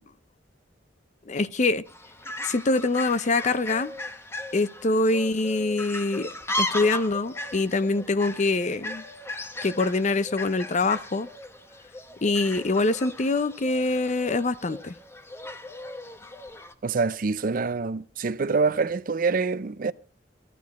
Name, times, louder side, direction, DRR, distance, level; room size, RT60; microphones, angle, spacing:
voice 1, 1.3-1.8 2.4-3.9 4.5-6.3 6.6-9.0 9.6-11.3 12.2-14.9, left 3 dB, 40° left, 0.6 m, -24 dB
Fowl, 1.9-16.7, left 1 dB, 15° left, 0.9 m, -37 dB
voice 2, 16.8-19.9, right 4 dB, 50° right, 0.5 m, -25 dB
15.0 x 12.0 x 4.1 m
head